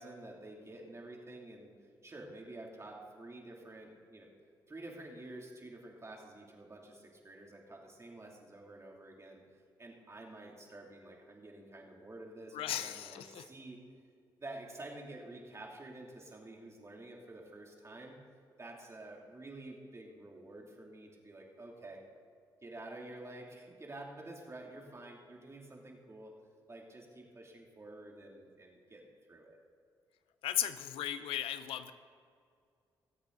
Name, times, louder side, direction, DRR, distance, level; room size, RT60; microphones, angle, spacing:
voice 1, 0.0-1.7 2.0-4.3 4.7-9.4 9.8-13.8 14.4-18.2 18.6-22.0 22.6-26.4 26.7-29.0 29.3-29.6, right 2 dB, 30° right, 0 dB, 2.9 m, -49 dB
voice 2, 12.5-13.4 30.4-31.9, left 11 dB, 90° left, 11 dB, 0.6 m, -36 dB
20.5 x 8.0 x 4.0 m, 2.2 s
cardioid pair, 65°, 9 cm